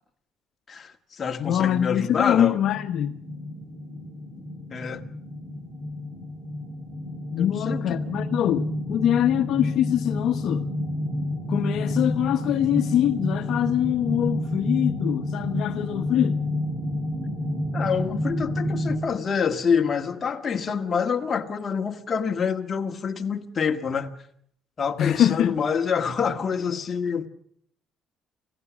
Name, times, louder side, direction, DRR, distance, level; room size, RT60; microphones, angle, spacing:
voice 1, 0.7-2.6 4.7-5.0 7.4-8.0 17.7-24.1 24.8-27.3, left 6 dB, 30° left, 1.7 m, -26 dB
voice 2, 1.4-3.2 7.3-10.6 11.5-16.4 25.0-25.6, left 11 dB, 65° left, 1.0 m, -24 dB
sound 1, 2.5-19.0, left 1 dB, 35° right, 6.2 m, -30 dB
28.5 x 16.0 x 6.2 m
cardioid pair, 135°, 0 cm